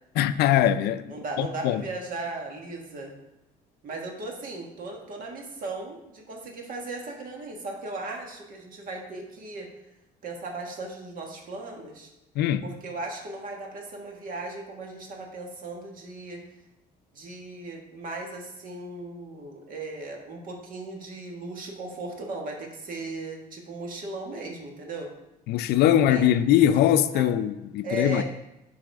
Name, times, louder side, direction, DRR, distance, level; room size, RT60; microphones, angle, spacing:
voice 1, 0.2-1.8 12.4-12.7 25.5-28.2, left 11 dB, 75° left, 0.4 m, -22 dB
voice 2, 1.1-3.1 3.8-9.7 10.2-12.1 12.6-16.4 17.1-25.1 26.1-26.3 27.1-27.2 27.8-28.2, right 2 dB, 55° right, 1.6 m, -37 dB
9.1 x 4.9 x 3.5 m
cardioid pair, 110°, 17 cm